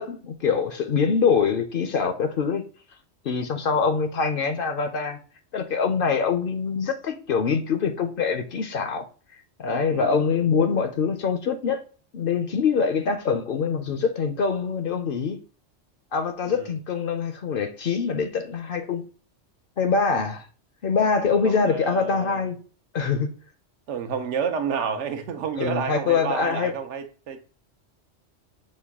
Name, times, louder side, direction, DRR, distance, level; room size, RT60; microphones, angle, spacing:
voice 1, 0.0-2.6 3.2-5.2 5.5-9.1 9.6-11.8 12.1-15.4 16.1-19.0 19.8-20.5 20.8-22.5 22.9-23.3 25.6-26.7, left 5 dB, 60° left, 0.6 m, -24 dB
voice 2, 9.9-10.2 16.5-16.7 21.4-22.5 23.9-27.4, right 6 dB, 80° right, 1.0 m, -30 dB
6.2 x 2.2 x 3.4 m
omnidirectional pair, 1.2 m